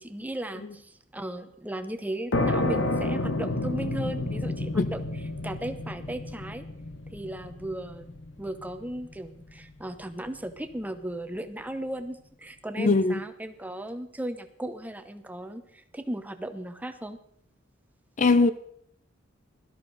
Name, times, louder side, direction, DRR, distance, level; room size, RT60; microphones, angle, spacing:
voice 1, 0.0-5.0 5.4-6.6 7.1-17.2, right 1 dB, 10° right, 0.9 m, -36 dB
sound 1, 2.3-9.7, left 2 dB, 65° left, 1.1 m, -30 dB
voice 2, 12.8-13.2 18.2-18.5, left 3 dB, 35° left, 0.5 m, -21 dB
17.0 x 13.0 x 4.0 m
head